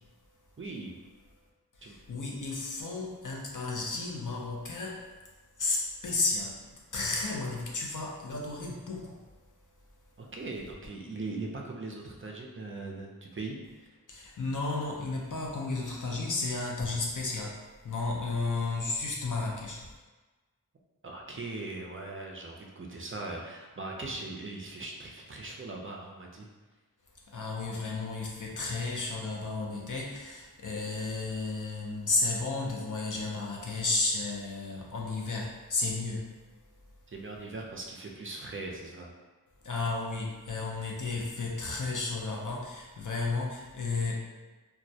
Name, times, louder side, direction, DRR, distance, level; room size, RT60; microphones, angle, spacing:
voice 1, 0.6-0.9 1.8-2.0 10.2-13.9 21.0-26.5 37.1-39.1, right 2 dB, 35° right, 0 dB, 0.4 m, -40 dB
voice 2, 1.7-5.1 5.6-9.2 14.1-19.9 27.2-36.4 39.6-44.1, left 3 dB, 55° left, -2 dB, 0.5 m, -33 dB
2.3 x 2.1 x 2.6 m, 1.2 s
wide cardioid pair, 40°, 38 cm